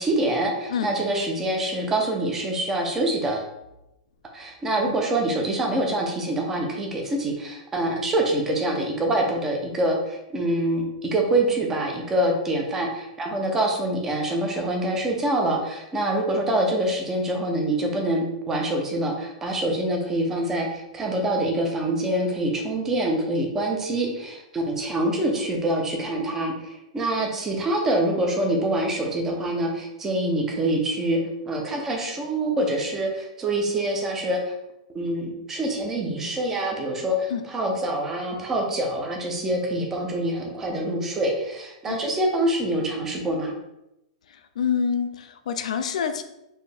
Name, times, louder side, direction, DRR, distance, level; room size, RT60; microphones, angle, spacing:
voice 1, 0.0-3.5 4.3-31.2 31.5-34.5 34.9-43.5, right 1 dB, 10° right, 1 dB, 0.5 m, -25 dB
voice 2, 44.6-46.2, left 7 dB, 65° left, 9 dB, 0.4 m, -26 dB
4.3 x 2.7 x 3.3 m, 0.88 s
supercardioid pair, 175°, 4 cm